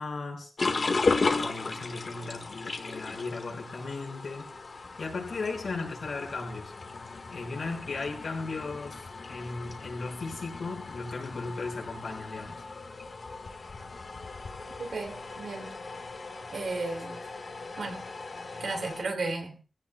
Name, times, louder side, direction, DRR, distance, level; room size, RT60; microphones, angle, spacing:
voice 1, 0.0-4.5 5.0-6.7 7.3-12.6, left 3 dB, 80° left, 5.1 m, -37 dB
sound 1, 0.6-19.0, left 3 dB, 55° left, 1.5 m, -36 dB
voice 2, 14.8-15.8 16.5-17.2 17.8-18.0 18.6-19.6, right 3 dB, 80° right, 2.9 m, -34 dB
26.0 x 16.0 x 2.3 m
wide cardioid pair, 130°, 0 cm